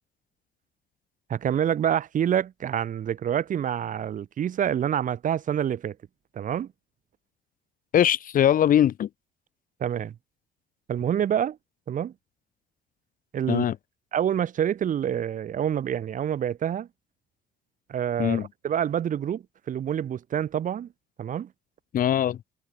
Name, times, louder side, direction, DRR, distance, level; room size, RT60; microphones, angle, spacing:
voice 1, 1.3-5.9 6.3-6.7 9.8-10.1 10.9-11.6 11.9-12.1 13.3-13.6 14.1-16.9 17.9-20.9 21.2-21.5, right 9 dB, 50° right, 3.3 m, -27 dB
voice 2, 7.9-9.1 13.5-13.8 18.2-18.5 21.9-22.4, left 10 dB, 55° left, 2.3 m, -21 dB
cardioid pair, 110°, 17 cm